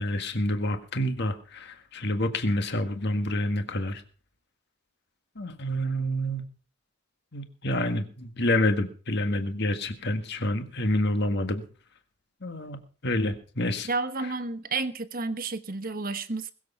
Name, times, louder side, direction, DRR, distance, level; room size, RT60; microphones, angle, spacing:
voice 1, 0.0-4.0 5.3-6.4 7.3-11.6 12.4-13.9, left 1 dB, 55° left, 1.7 m, -28 dB
voice 2, 13.8-16.5, right 3 dB, 45° right, 1.2 m, -31 dB
21.0 x 7.8 x 5.7 m
head